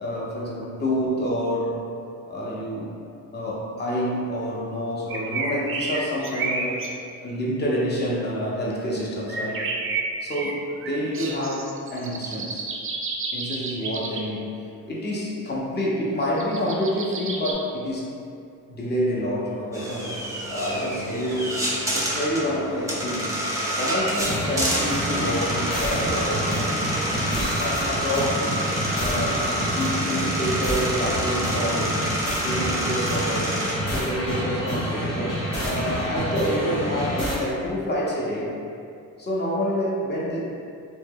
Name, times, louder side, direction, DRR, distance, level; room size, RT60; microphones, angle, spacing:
voice 1, 0.0-2.0 2.3-2.9 3.3-6.9 7.2-9.7 10.2-12.7 13.3-18.1 18.7-23.4 23.8-26.8 27.1-28.5 28.8-29.4 29.8-33.6 33.9-38.6 39.2-40.5, equal, 30° left, -5 dB, 0.7 m, -28 dB
sound 1, 5.1-6.9 9.3-14.2 16.2-17.5, right 4 dB, 40° right, 0.4 m, -30 dB
sound 2, 19.7-33.7, right 1 dB, 10° right, 0.7 m, -28 dB
sound 3, 24.2-37.4, equal, 75° left, 1.0 m, -28 dB
2.1 x 2.0 x 3.6 m, 2.4 s
supercardioid pair, 60°, 33 cm